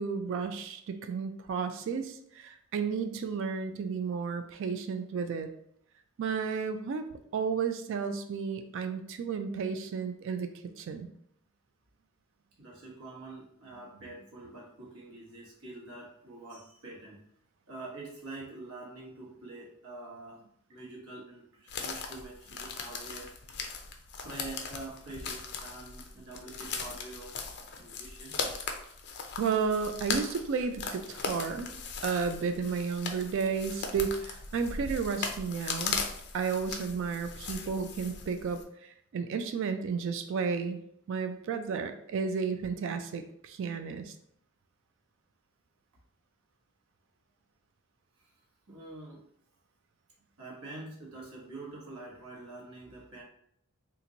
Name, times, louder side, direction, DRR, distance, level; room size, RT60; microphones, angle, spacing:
voice 1, 0.0-5.5 6.2-10.5 10.8-11.1 29.4-31.7 32.0-36.0 36.3-40.8 41.1-44.1, right 5 dB, 60° right, 9 dB, 0.3 m, -32 dB
voice 2, 12.6-17.2 17.7-20.4 20.7-23.3 24.2-27.4 27.7-28.4 48.2-48.3 48.7-49.2 50.4-53.2, right 2 dB, 85° right, -3 dB, 1.2 m, -46 dB
sound 1, 21.7-38.6, left 5 dB, 50° left, 0.5 m, -38 dB
2.9 x 2.5 x 3.8 m, 0.70 s
head